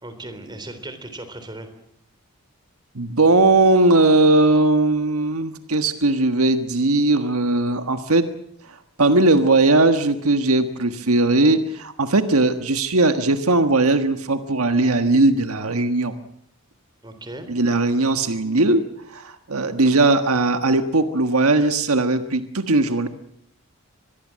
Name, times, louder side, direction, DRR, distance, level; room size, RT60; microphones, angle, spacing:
voice 1, 0.0-1.7 17.0-17.5, right 2 dB, 20° right, 9 dB, 3.7 m, -36 dB
voice 2, 2.9-8.3 9.0-16.2 17.5-18.8 19.1-23.1, right 2 dB, 80° right, 9 dB, 1.5 m, -18 dB
25.0 x 20.5 x 7.5 m, 0.70 s
head